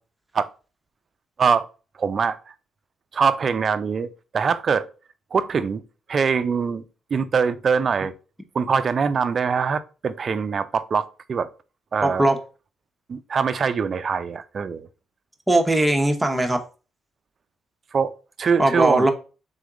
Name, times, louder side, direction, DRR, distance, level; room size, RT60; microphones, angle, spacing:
voice 1, 2.0-2.4 3.1-4.9 5.3-5.8 6.1-6.8 7.1-8.1 8.5-11.5 11.9-12.3 13.1-14.9 17.9-19.1, right 6 dB, 45° right, 0.4 m, -23 dB
voice 2, 12.0-12.4 15.5-16.6 18.6-19.1, right 1 dB, 5° right, 0.8 m, -19 dB
3.9 x 3.5 x 3.7 m
cardioid pair, 90°, 0 cm